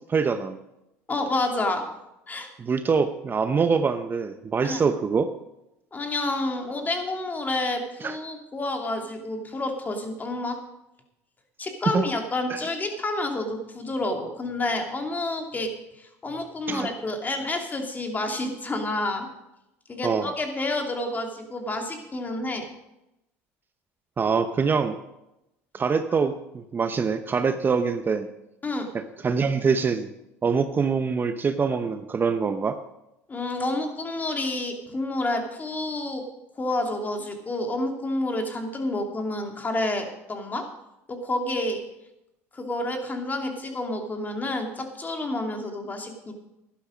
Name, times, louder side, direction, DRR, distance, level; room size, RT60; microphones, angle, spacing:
voice 1, 0.1-0.6 2.6-5.3 8.0-8.2 11.9-12.0 12.5-12.6 16.7-16.9 20.0-20.3 24.2-25.0 25.7-28.3 28.9-30.1 30.4-32.8, right 5 dB, 30° right, 9 dB, 0.8 m, -24 dB
voice 2, 1.1-1.8 2.3-2.5 4.6-4.8 5.9-10.6 11.6-19.3 19.9-22.6 28.6-28.9 33.3-36.2 36.6-40.6 41.1-41.8 42.5-46.3, left 2 dB, 25° left, 4 dB, 2.7 m, -29 dB
11.5 x 11.5 x 5.1 m, 0.89 s
supercardioid pair, 85°, 7 cm